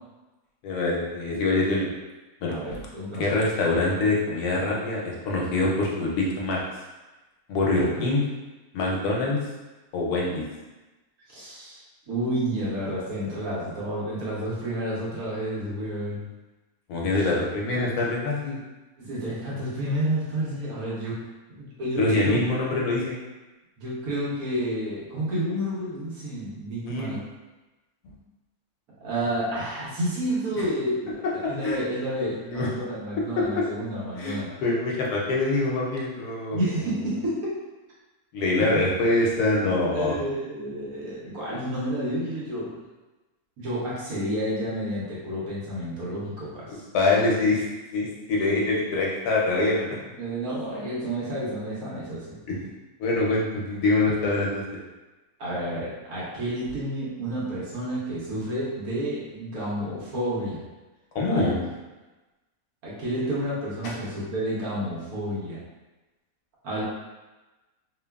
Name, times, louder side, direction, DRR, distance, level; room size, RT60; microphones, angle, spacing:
voice 1, 0.6-1.9 2.4-2.5 3.2-6.6 7.5-8.2 8.7-9.4 9.9-10.4 16.9-18.6 22.0-23.2 26.8-27.2 28.0-28.1 31.4-31.8 32.5-32.7 33.3-33.6 34.2-36.6 38.3-40.1 46.9-47.6 47.9-50.0 52.5-52.7 53.0-54.6 61.1-61.5 63.8-64.1, left 2 dB, 90° left, -3 dB, 1.1 m, -24 dB
voice 2, 2.5-3.3 7.7-8.0 11.3-11.8 12.1-16.2 19.0-21.2 21.5-22.4 23.8-27.2 29.0-34.6 36.5-37.6 38.6-38.8 39.9-42.8 43.6-46.8 50.2-52.4 55.4-60.6 61.3-61.5 62.8-65.6 66.6-66.8, right 1 dB, 80° right, -7 dB, 1.3 m, -30 dB
3.0 x 2.2 x 2.2 m, 1.1 s
omnidirectional pair, 1.6 m